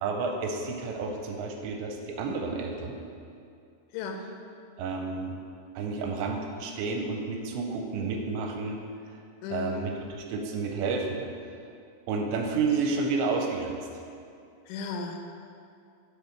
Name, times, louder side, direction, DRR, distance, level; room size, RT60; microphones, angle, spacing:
voice 1, 0.0-3.0 4.8-5.4 5.8-8.8 9.5-9.9 10.3-11.3 12.1-13.8, right 4 dB, 80° right, 2 dB, 2.7 m, -30 dB
voice 2, 3.9-4.2 9.4-9.9 14.7-15.2, left 4 dB, 85° left, 4 dB, 3.0 m, -34 dB
6.9 x 6.4 x 4.4 m, 2.5 s
omnidirectional pair, 5.4 m